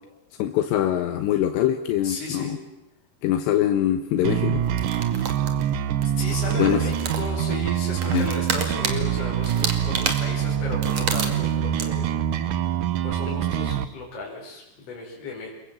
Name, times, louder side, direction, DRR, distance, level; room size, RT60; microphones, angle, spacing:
voice 1, 0.4-2.6 3.2-4.6 6.6-6.8 8.1-8.3, left 11 dB, 85° left, 6 dB, 3.4 m, -23 dB
voice 2, 2.0-2.5 6.2-12.1 13.0-15.5, left 3 dB, 35° left, -3 dB, 5.9 m, -34 dB
sound 1, 4.2-13.8, right 10 dB, 70° right, 2.2 m, -25 dB
sound 2, 4.8-5.7 6.0-6.1 6.3-7.5 8.0-9.0 9.4-11.5 11.8-11.9, right 5 dB, 45° right, 2.9 m, -29 dB
29.5 x 22.0 x 7.6 m, 0.95 s
omnidirectional pair, 4.9 m